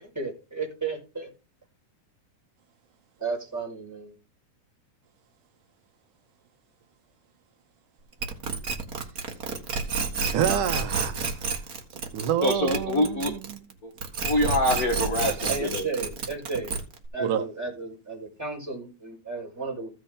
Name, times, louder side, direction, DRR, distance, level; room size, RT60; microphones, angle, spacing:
voice 1, 0.1-1.3 3.2-4.1 15.5-16.8 17.1-19.9, right 4 dB, 5° right, 4.6 m, -33 dB
sound 1, 8.2-13.7 14.0-17.1, right 5 dB, 45° right, 1.1 m, -29 dB
voice 2, 10.3-11.6 11.9-13.6 17.2-17.4, right 9 dB, 75° right, 2.2 m, -28 dB
voice 3, 12.4-13.3 13.8-13.9 14.2-15.8, left 1 dB, 55° left, 1.0 m, -25 dB
15.5 x 6.3 x 3.7 m
omnidirectional pair, 3.8 m